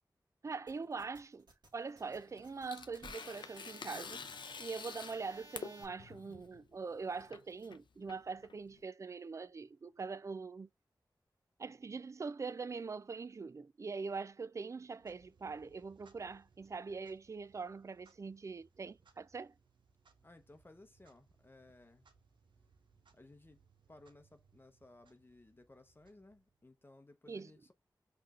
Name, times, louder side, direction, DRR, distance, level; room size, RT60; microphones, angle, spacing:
voice 1, 0.4-1.5 1.7-4.3 4.6-10.7 11.6-19.5 27.3-27.5, right 4 dB, 40° right, 0.4 m, -43 dB
sound 1, 0.7-5.9, right 1 dB, 65° right, 1.7 m, -57 dB
Tearing, 2.0-8.8, left 6 dB, 80° left, 0.5 m, -49 dB
Clock, 14.9-26.8, right 5 dB, 85° right, 0.8 m, -70 dB
voice 2, 20.2-22.1 23.1-23.6 23.9-27.7, left 2 dB, 30° left, 0.8 m, -60 dB
5.7 x 3.3 x 2.4 m
wide cardioid pair, 60°, 8 cm